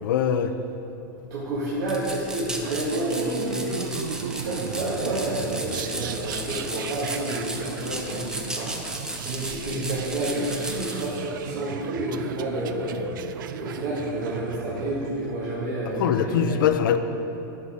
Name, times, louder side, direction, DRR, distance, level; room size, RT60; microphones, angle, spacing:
voice 1, 0.0-0.5 16.0-17.0, left 9 dB, 80° left, 9 dB, 0.5 m, -22 dB
voice 2, 1.2-3.8 4.4-8.7 9.2-13.0 13.6-16.6, right 1 dB, 70° right, -7 dB, 1.6 m, -29 dB
sound 1, 1.9-11.1, right 1 dB, 5° right, 0.7 m, -35 dB
sound 2, 2.6-15.3, right 8 dB, 90° right, 0.4 m, -36 dB
sound 3, 3.1-4.3, left 8 dB, 30° right, 1.0 m, -38 dB
11.0 x 4.1 x 4.9 m, 2.9 s
supercardioid pair, 130°, 11 cm